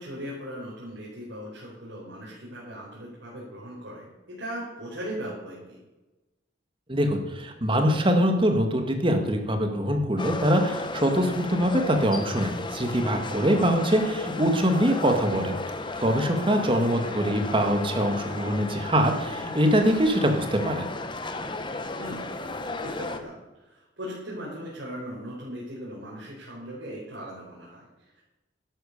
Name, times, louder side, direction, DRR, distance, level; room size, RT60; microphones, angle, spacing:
voice 1, 0.0-5.8 16.6-17.2 22.0-22.2 22.8-28.2, equal, 90° right, -6 dB, 4.5 m, -39 dB
voice 2, 6.9-15.6 16.0-20.9, equal, 30° right, 5 dB, 1.9 m, -23 dB
sound 1, 10.2-23.2, left 2 dB, 25° left, 1.0 m, -34 dB
12.0 x 11.0 x 6.7 m, 1.1 s
head